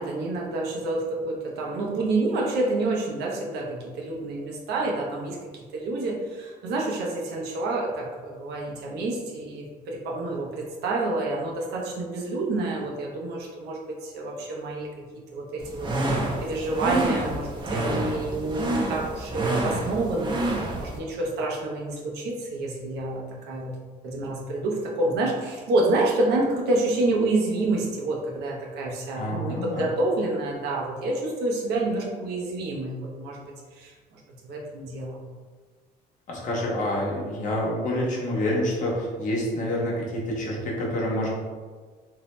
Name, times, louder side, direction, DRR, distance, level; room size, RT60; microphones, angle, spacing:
voice 1, 0.0-14.9 15.1-23.7 24.0-35.2, right 2 dB, 75° right, -2 dB, 0.6 m, -28 dB
sound 1, 15.6-21.0, right 1 dB, 30° right, 0.5 m, -28 dB
voice 2, 29.2-29.9 36.3-41.3, left 1 dB, 50° left, -4 dB, 0.9 m, -27 dB
2.7 x 2.0 x 3.1 m, 1.5 s
cardioid pair, 110°, 17 cm